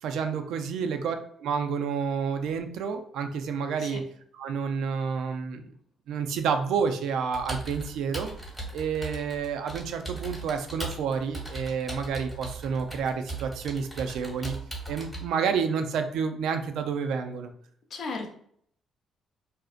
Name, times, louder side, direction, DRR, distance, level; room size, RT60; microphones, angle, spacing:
voice 1, 0.0-4.0 4.3-5.7 6.1-8.3 8.7-14.5 14.9-17.5, right 6 dB, 85° right, 6 dB, 0.3 m, -29 dB
Computer keyboard, 7.3-15.2, right 2 dB, ahead, 0.9 m, -38 dB
voice 2, 17.9-18.3, left 4 dB, 60° left, 2 dB, 0.5 m, -36 dB
2.5 x 2.0 x 2.4 m, 0.62 s
cardioid pair, 90°, 0 cm